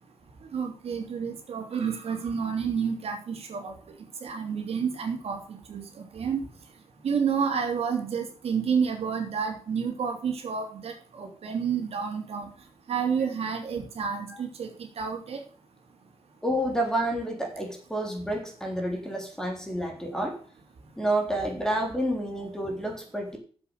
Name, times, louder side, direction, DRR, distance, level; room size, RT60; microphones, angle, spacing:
voice 1, 0.5-3.7 4.2-6.4 7.0-12.5 12.9-15.4, right 6 dB, 80° right, 3 dB, 3.1 m, -30 dB
voice 2, 16.4-20.4 21.0-23.4, right 1 dB, 5° left, 1 dB, 3.6 m, -29 dB
8.2 x 7.6 x 8.1 m, 0.43 s
wide cardioid pair, 130°, 10 cm